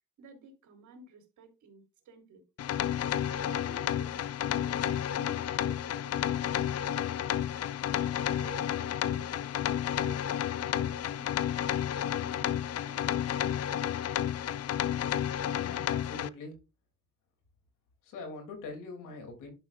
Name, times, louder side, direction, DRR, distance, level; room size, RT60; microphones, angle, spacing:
voice 1, 0.2-2.4 3.2-7.7 8.2-9.5 9.9-11.3 11.9-13.1, right 3 dB, 75° right, 3.1 m, -52 dB
sound 1, 2.6-16.3, left 10 dB, 55° left, 0.5 m, -31 dB
voice 2, 15.5-16.5 18.1-19.5, left 3 dB, 90° left, 3.0 m, -43 dB
11.5 x 6.2 x 2.5 m
cardioid pair, 90°, 30 cm